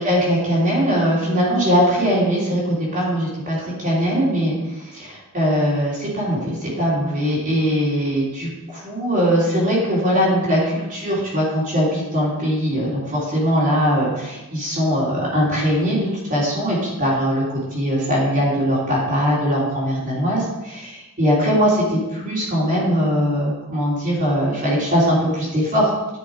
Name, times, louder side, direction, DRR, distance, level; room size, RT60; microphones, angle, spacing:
voice 1, 0.0-2.6 2.9-3.5 3.8-4.5 5.3-8.5 8.8-13.0 13.3-17.4 17.7-20.4 21.2-21.8 22.2-25.8, equal, 40° right, -7 dB, 3.3 m, -20 dB
11.0 x 6.0 x 4.8 m, 1.1 s
head